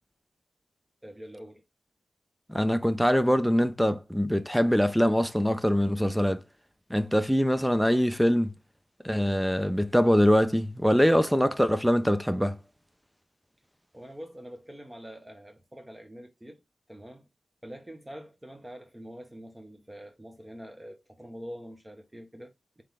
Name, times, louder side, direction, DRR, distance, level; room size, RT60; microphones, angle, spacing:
voice 1, 1.0-1.6 13.9-16.6 16.9-17.3 17.6-22.8, equal, 15° right, 1.0 m, -45 dB
voice 2, 2.5-6.4 6.9-8.5 9.0-12.6, equal, ahead, 0.5 m, -23 dB
3.7 x 3.2 x 3.5 m
cardioid pair, 55°, 0 cm